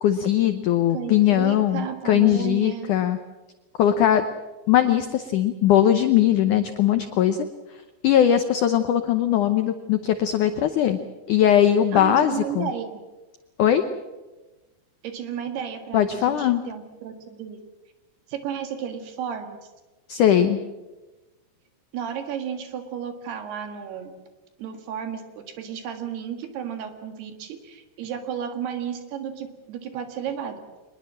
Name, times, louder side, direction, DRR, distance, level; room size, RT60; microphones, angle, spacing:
voice 1, 0.0-3.2 3.8-4.2 4.7-7.4 8.0-11.0 11.3-12.7 13.6-13.8 15.9-16.6 20.1-20.6, left 10 dB, 90° left, 9 dB, 1.7 m, -20 dB
voice 2, 0.9-2.9 11.9-13.0 15.0-17.6 18.3-19.6 21.9-24.1 24.6-30.6, right 8 dB, 70° right, 7 dB, 3.8 m, -33 dB
24.5 x 20.5 x 7.6 m, 1.2 s
omnidirectional pair, 5.0 m